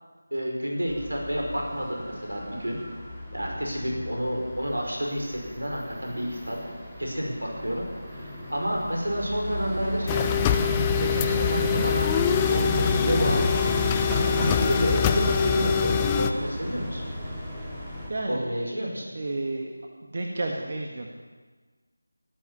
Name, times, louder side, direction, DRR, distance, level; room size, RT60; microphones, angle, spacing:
voice 1, 0.3-2.8 3.3-6.6 7.0-10.3 11.0-12.1 12.5-13.8 14.1-17.0 17.4-17.5 18.3-19.1, equal, 85° right, -1 dB, 5.4 m, -30 dB
sound 1, 0.9-18.1, equal, 5° right, 2.6 m, -34 dB
sound 2, 10.1-16.3, left 7 dB, 10° left, 0.6 m, -24 dB
voice 2, 18.1-18.8 19.1-19.8 20.0-21.1, right 2 dB, 40° right, 1 dB, 1.7 m, -32 dB
16.5 x 8.7 x 9.8 m, 1.4 s
figure-of-eight pair, 165°, 0 cm